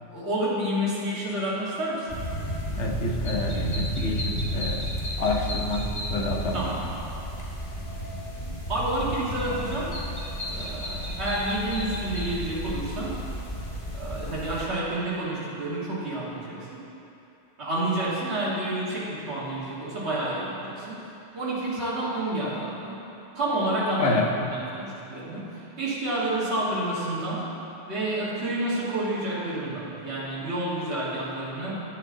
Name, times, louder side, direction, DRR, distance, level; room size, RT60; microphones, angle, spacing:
voice 1, 0.1-2.1 6.5-6.9 8.7-10.0 10.5-13.2 13.9-16.8 17.6-23.0 23.3-27.5 27.9-31.8, right 1 dB, 65° right, -9 dB, 2.3 m, -29 dB
sound 1, 2.1-14.7, equal, 45° left, 1.7 m, -32 dB
voice 2, 2.8-4.9 5.2-6.6 24.0-24.3, left 2 dB, 70° left, 1 dB, 1.3 m, -28 dB
10.5 x 10.0 x 3.9 m, 2.8 s
omnidirectional pair, 1.2 m